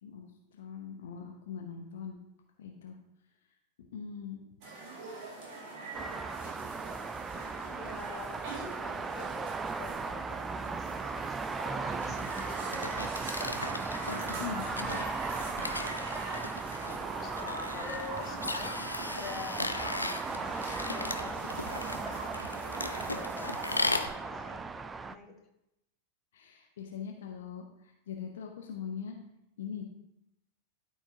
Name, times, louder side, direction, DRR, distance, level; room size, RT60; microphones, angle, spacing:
voice 1, 0.0-2.2 2.6-3.0 3.9-4.4 14.4-15.0 26.3-29.2 29.6-29.8, left 7 dB, 60° left, 2 dB, 0.8 m, -41 dB
sound 1, 4.6-24.0, right 2 dB, 40° right, 2.4 m, -43 dB
sound 2, 5.9-25.2, right 4 dB, 15° right, 0.3 m, -37 dB
voice 2, 7.7-13.4 17.1-19.7 20.1-21.6 21.9-23.6 24.0-25.3, left 4 dB, 25° left, 2 dB, 1.3 m, -47 dB
sound 3, 12.0-24.1, left 2 dB, 85° left, 0.4 m, -37 dB
12.5 x 4.6 x 2.8 m, 0.84 s
figure-of-eight pair, 90°, 0 cm